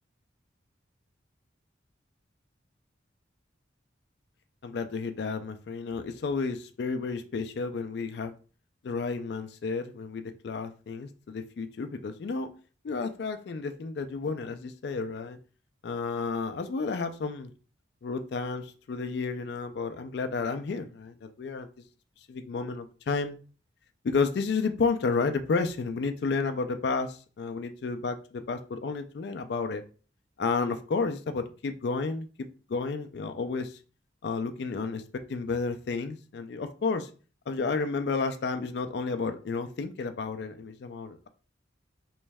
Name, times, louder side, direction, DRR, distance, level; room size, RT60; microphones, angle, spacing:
voice 1, 4.6-8.3 8.8-12.5 12.8-15.4 15.8-17.5 18.0-21.7 22.3-23.4 24.0-29.8 30.4-32.3 32.7-33.8 34.2-37.1 37.5-41.3, left 4 dB, 60° left, 8 dB, 0.3 m, -31 dB
3.2 x 3.1 x 3.4 m, 0.38 s
head